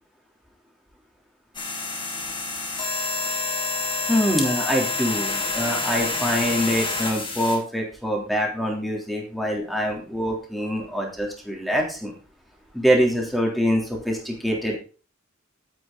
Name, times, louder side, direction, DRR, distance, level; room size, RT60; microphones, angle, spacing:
sound 1, 1.5-7.6, left 3 dB, 25° left, 4.6 m, -28 dB
voice 1, 4.1-12.1 12.7-14.8, equal, ahead, -1 dB, 3.3 m, -24 dB
12.5 x 9.5 x 4.0 m, 0.36 s
head